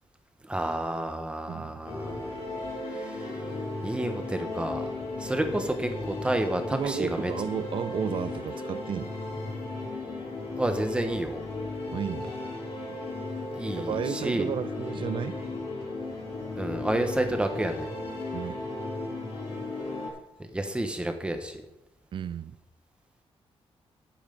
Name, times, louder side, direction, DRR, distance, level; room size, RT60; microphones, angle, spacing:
voice 1, 0.4-2.3 2.9-3.4 3.8-4.9 5.2-7.3 10.6-11.4 13.5-14.5 16.6-17.9 20.5-21.6, right 1 dB, 10° right, 1.2 m, -30 dB
voice 2, 1.5-1.8 6.7-9.1 11.9-12.3 13.8-15.4 18.3-18.6 22.1-22.6, right 8 dB, 50° right, 0.5 m, -33 dB
sound 1, 1.9-20.1, left 2 dB, 80° left, 4.7 m, -35 dB
9.9 x 8.6 x 5.3 m
wide cardioid pair, 170°, 11 cm